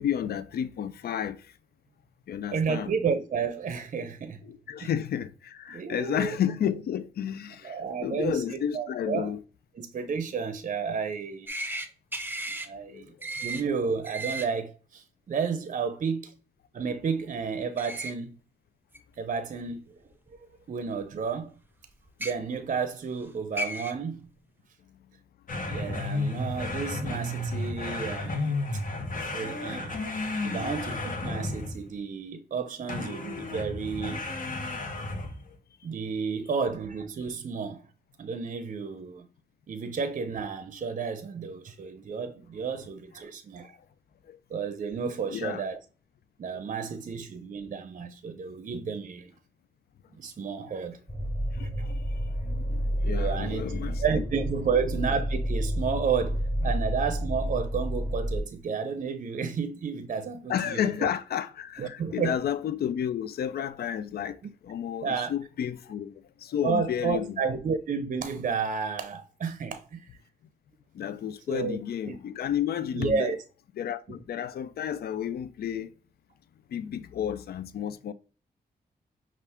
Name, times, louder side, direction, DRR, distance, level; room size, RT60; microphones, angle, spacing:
voice 1, 0.0-1.5 2.3-2.9 4.4-9.4 12.9-13.0 30.5-30.7 35.5-35.6 43.6-43.8 44.2-44.4 45.3-45.6 51.5-54.2 56.6-56.7 60.5-67.4 70.9-73.4 73.8-75.9 76.7-78.1, left 9 dB, 70° left, 0.4 m, -32 dB
voice 2, 2.5-4.4 4.8-4.9 5.7-6.4 7.6-9.3 9.8-11.5 12.6-13.1 13.4-16.3 16.7-18.3 19.2-20.0 20.3-21.6 22.2-24.3 25.7-28.8 29.2-30.0 30.4-34.2 35.8-37.8 38.2-39.3 39.7-43.7 44.5-45.8 46.4-49.3 50.2-51.0 53.1-53.6 54.0-61.1 61.8-62.4 65.0-65.3 66.6-70.1 71.5-71.8 72.1-72.2 72.9-73.4, right 5 dB, 50° right, 0.6 m, -31 dB
sound 1, 11.5-11.9 12.1-12.7 13.2-13.6 14.0-14.5 17.8-18.1 18.9-19.0 20.3-20.4 22.1-22.3 23.2-23.3 23.6-23.9, right 1 dB, 10° right, 0.7 m, -34 dB
sound 2, 25.5-31.9 32.9-35.5, left 2 dB, 55° left, 1.1 m, -32 dB
sound 3, 51.1-58.4, equal, 10° left, 0.9 m, -30 dB
5.5 x 2.4 x 3.5 m
cardioid pair, 80°, 17 cm